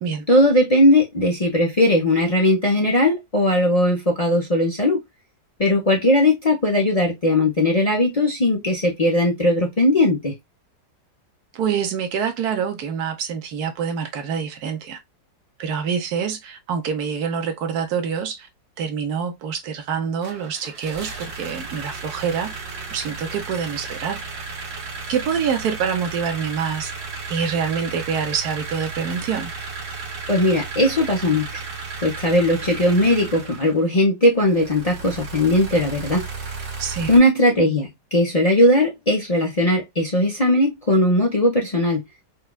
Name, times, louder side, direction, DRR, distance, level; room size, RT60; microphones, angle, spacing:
voice 1, 0.3-5.0 5.6-10.3 30.3-31.5 32.0-36.2 37.1-42.0, left 1 dB, 40° left, 0.5 m, -18 dB
voice 2, 11.5-15.0 15.6-18.5 18.8-22.5 22.9-24.2 25.1-26.9 27.3-29.5 36.8-37.1, right 7 dB, 65° right, 1.3 m, -26 dB
sound 1, 20.2-33.8 34.4-37.2, right 4 dB, 80° right, 2.0 m, -34 dB
4.4 x 2.3 x 2.2 m
omnidirectional pair, 1.9 m